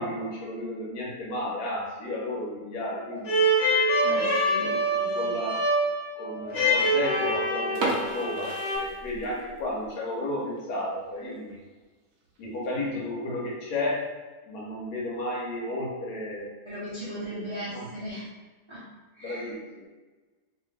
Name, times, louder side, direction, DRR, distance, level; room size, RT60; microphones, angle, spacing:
voice 1, 0.0-3.5 4.0-4.3 4.6-4.8 5.1-5.6 6.2-11.6 12.4-14.1 14.5-16.5 17.0-17.9 19.2-19.9, left 1 dB, 90° left, -4 dB, 1.2 m, -33 dB
sound 1, 3.2-8.8, right 1 dB, 50° left, 0.9 m, -25 dB
voice 2, 4.0-5.5 16.7-18.3 18.7-18.8 19.2-19.5, equal, 45° right, -10 dB, 0.3 m, -38 dB
sound 2, 7.7-9.6 9.9-10.0 10.6-10.7 11.1-11.2 11.5-11.6 12.3-12.7, right 2 dB, 70° right, 1.0 m, -32 dB
2.8 x 2.5 x 3.1 m, 1.3 s
omnidirectional pair, 1.6 m